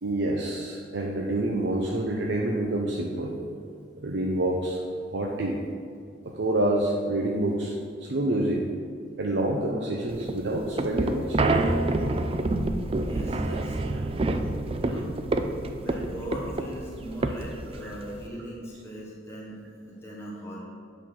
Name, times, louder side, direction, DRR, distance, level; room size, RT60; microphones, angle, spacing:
voice 1, 0.0-3.4 4.0-4.8 5.1-5.6 6.2-7.7 8.0-8.6 9.2-11.4 17.8-17.9, right 1 dB, 75° right, -1 dB, 0.7 m, -27 dB
sound 1, 10.1-18.3, right 2 dB, 30° right, 0.4 m, -28 dB
voice 2, 13.0-14.1 14.8-15.2 15.7-20.6, equal, 15° left, -5 dB, 1.1 m, -39 dB
8.1 x 4.4 x 6.2 m, 2.3 s
head